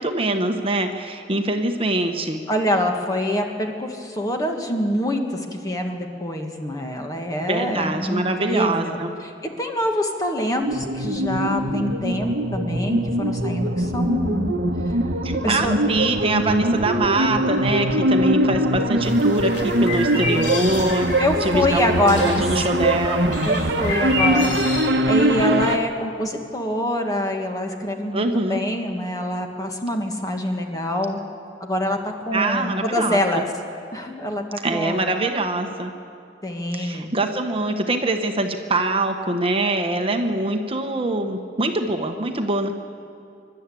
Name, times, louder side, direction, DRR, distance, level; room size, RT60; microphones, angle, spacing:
voice 1, 0.0-2.4 7.4-9.1 15.2-21.8 22.1-23.3 28.1-28.6 32.3-33.4 34.6-35.9 36.7-42.7, right 2 dB, 30° right, 5 dB, 1.1 m, -24 dB
voice 2, 2.5-9.3 9.6-14.5 14.9-15.0 15.4-15.8 21.2-22.7 23.4-31.2 31.6-33.5 33.9-34.4 34.7-35.0 36.4-37.1, left 1 dB, 20° left, 3 dB, 1.7 m, -25 dB
sound 1, 10.6-25.8, right 1 dB, 70° right, 1.1 m, -22 dB
sound 2, 19.0-24.9, left 2 dB, 75° left, 3.0 m, -30 dB
25.5 x 12.0 x 8.5 m, 2.4 s
head